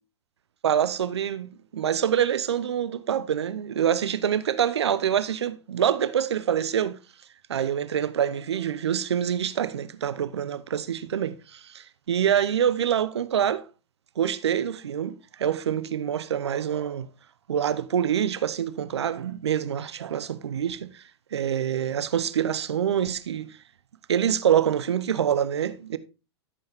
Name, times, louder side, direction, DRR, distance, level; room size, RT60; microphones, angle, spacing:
voice 1, 0.6-7.0 7.5-13.6 14.2-17.1 17.5-21.0 21.3-23.6 24.1-26.0, right 9 dB, 80° right, 0.8 m, -26 dB
13.5 x 5.5 x 3.5 m
hypercardioid pair, 105°, 14 cm